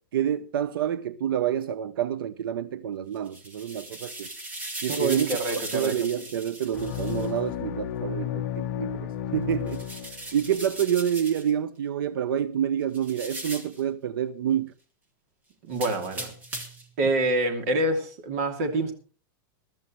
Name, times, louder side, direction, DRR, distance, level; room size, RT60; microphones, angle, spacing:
voice 1, 0.1-4.3 4.8-9.8 10.3-14.7, right 9 dB, 80° right, 0.8 m, -28 dB
sound 1, 3.2-7.3 9.7-11.5 12.9-13.8 15.7-16.9, right 2 dB, 15° right, 1.7 m, -38 dB
voice 2, 4.9-5.9 15.6-16.3 17.0-18.9, right 2 dB, 45° right, 2.8 m, -26 dB
sound 2, 6.7-10.6, left 11 dB, 45° left, 1.2 m, -32 dB
22.0 x 13.0 x 3.2 m
supercardioid pair, 180°, 12 cm